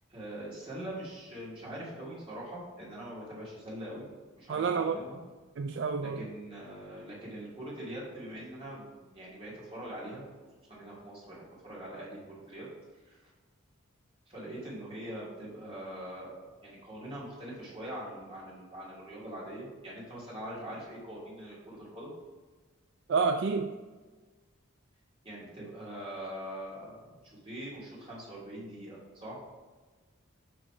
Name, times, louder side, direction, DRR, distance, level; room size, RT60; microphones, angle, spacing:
voice 1, 0.1-4.1 4.4-5.2 6.0-10.2 10.7-12.2 12.5-12.7 13.0-13.3 14.3-22.1 25.2-27.2 27.4-29.4, right 1 dB, 25° right, -6 dB, 2.4 m, -43 dB
voice 2, 4.5-5.0 5.6-6.2 23.1-23.7, right 5 dB, 55° right, 7 dB, 0.3 m, -29 dB
7.8 x 3.9 x 4.9 m, 1.3 s
head